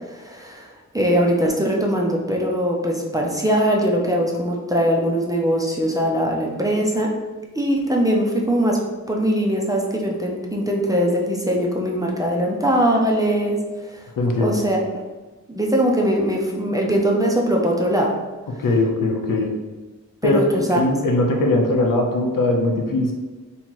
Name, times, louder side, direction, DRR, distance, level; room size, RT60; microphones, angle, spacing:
voice 1, 0.1-7.1 7.6-8.8 9.1-14.0 14.4-14.8 15.5-18.1 20.2-20.8, equal, 10° right, -1 dB, 0.4 m, -21 dB
voice 2, 14.2-14.6 18.5-19.5 20.2-20.4 20.7-23.1, left 2 dB, 85° left, 1 dB, 0.7 m, -20 dB
2.9 x 2.8 x 4.4 m, 1.2 s
wide cardioid pair, 165°, 32 cm